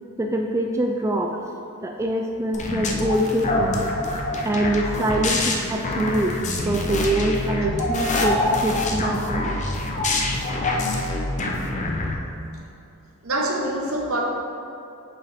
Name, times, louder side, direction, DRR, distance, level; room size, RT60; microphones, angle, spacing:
voice 1, 0.2-1.4 1.8-3.8 4.4-6.3 6.6-9.5, right 1 dB, 15° right, 1 dB, 0.3 m, -24 dB
sound 1, 2.5-12.1, left 2 dB, 35° left, 0.6 m, -25 dB
voice 2, 13.2-14.2, right 1 dB, 70° right, 0 dB, 1.0 m, -25 dB
7.1 x 5.5 x 3.5 m, 2.7 s
head